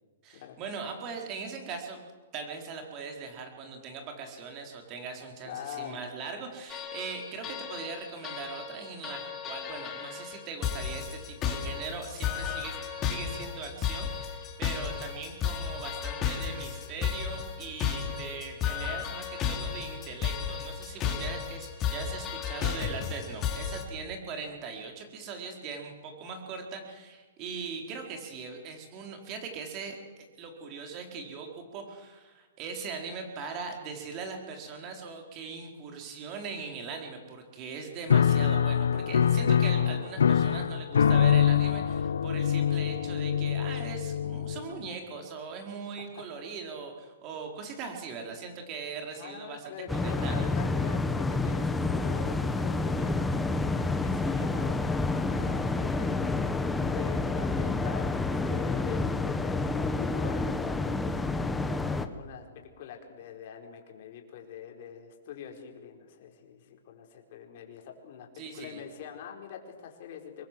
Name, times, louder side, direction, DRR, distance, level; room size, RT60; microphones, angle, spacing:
voice 1, 0.2-2.0 2.3-12.8 13.0-50.5 68.3-68.8, right 5 dB, 30° right, 3 dB, 4.5 m, -40 dB
voice 2, 5.4-6.0 46.1-46.4 49.1-60.7 61.4-70.5, left 8 dB, 50° left, 2 dB, 4.7 m, -44 dB
sound 1, 6.7-23.8, left 8 dB, 25° left, 3.5 m, -34 dB
Piano, 38.1-44.9, left 8 dB, 90° left, 1.0 m, -25 dB
sound 2, 49.9-62.1, left 3 dB, 5° left, 1.1 m, -29 dB
25.0 x 22.0 x 7.7 m, 1.3 s
hypercardioid pair, 150°, 0 cm